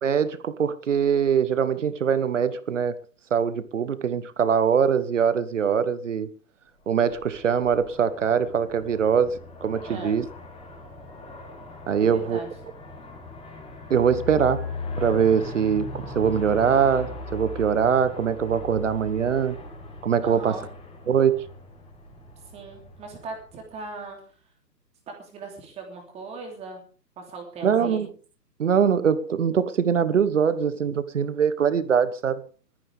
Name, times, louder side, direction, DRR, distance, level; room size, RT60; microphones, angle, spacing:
voice 1, 0.0-2.9 3.3-6.3 6.9-10.2 11.9-12.4 13.9-14.7 15.0-19.6 20.0-20.6 21.1-21.4 27.6-28.1 28.6-32.4, right 7 dB, 45° right, 1.2 m, -22 dB
Aircraft, 6.8-24.1, left 3 dB, 10° left, 4.9 m, -39 dB
voice 2, 12.0-12.5 20.2-20.7 22.5-24.2 25.1-26.8 27.2-28.0, right 3 dB, 10° right, 3.0 m, -39 dB
20.5 x 14.0 x 3.5 m
figure-of-eight pair, 140°, 50 cm